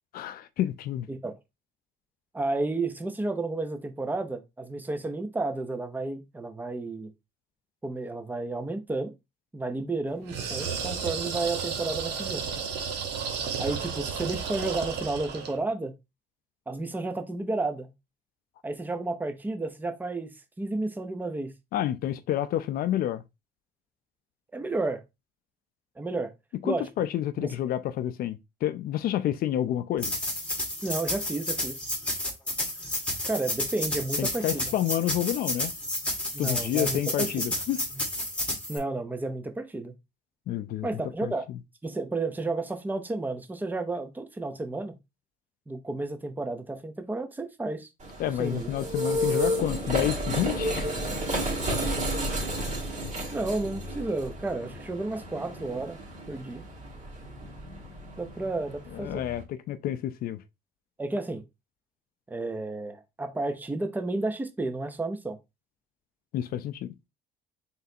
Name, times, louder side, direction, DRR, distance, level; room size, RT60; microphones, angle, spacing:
voice 1, 0.1-1.1 21.7-23.2 26.6-30.1 34.2-35.7 36.4-37.8 40.5-40.9 41.2-41.6 48.2-51.0 52.5-52.7 58.9-60.4 66.3-66.9, left 12 dB, 60° left, 0.4 m, -29 dB
voice 2, 2.3-7.1 7.8-9.1 9.5-12.4 13.6-15.9 16.7-17.9 18.6-21.5 24.5-25.0 26.0-26.3 26.6-26.9 27.4-27.5 30.8-31.8 33.2-34.7 36.3-37.5 38.7-39.9 40.8-41.5 41.8-45.0 45.7-47.9 48.2-48.7 53.3-56.0 56.3-56.6 58.2-59.3 61.0-61.4 62.3-65.4, right 2 dB, 10° right, 0.7 m, -32 dB
sound 1, 10.2-15.6, right 6 dB, 85° right, 1.2 m, -32 dB
sound 2, 30.0-38.8, left 1 dB, 5° left, 1.5 m, -31 dB
sound 3, 48.0-59.4, equal, 45° right, 2.3 m, -32 dB
4.1 x 3.9 x 2.7 m
cardioid pair, 110°, 17 cm